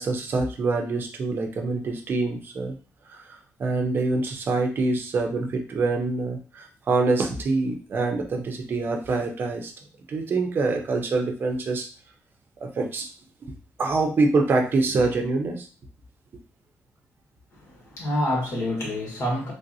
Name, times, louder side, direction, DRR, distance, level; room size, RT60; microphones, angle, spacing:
voice 1, 0.0-2.7 3.1-9.7 10.1-11.9 12.6-13.1 13.8-15.7, right 3 dB, 45° right, 0.5 m, -25 dB
voice 2, 17.5-19.5, left 1 dB, 70° left, 1.4 m, -27 dB
3.3 x 2.5 x 2.6 m
wide cardioid pair, 165°, 5 cm